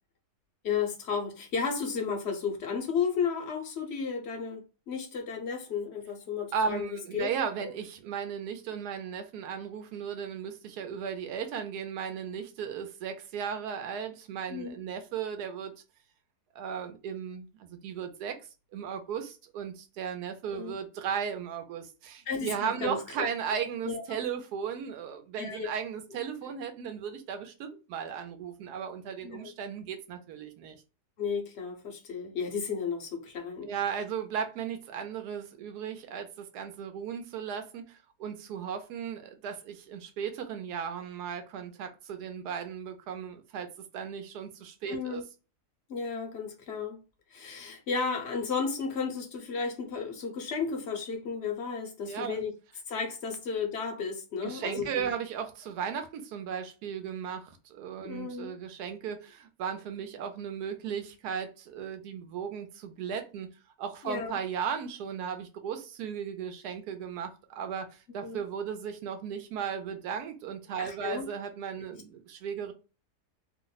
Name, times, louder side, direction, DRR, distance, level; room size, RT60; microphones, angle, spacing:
voice 1, 0.6-7.3 14.5-14.8 20.5-20.8 22.3-23.3 23.8-24.0 25.4-25.7 29.2-29.5 31.2-33.7 44.9-45.2 45.9-47.0 47.3-52.5 52.9-55.1 58.0-58.5 64.0-64.4 68.2-68.4 70.8-71.3, left 5 dB, 60° left, 0.7 m, -33 dB
voice 2, 6.5-15.7 16.5-18.4 18.7-30.8 33.6-45.2 52.0-52.4 54.4-63.5 63.8-72.7, right 7 dB, 75° right, 1.1 m, -36 dB
2.9 x 2.1 x 3.8 m
omnidirectional pair, 1.7 m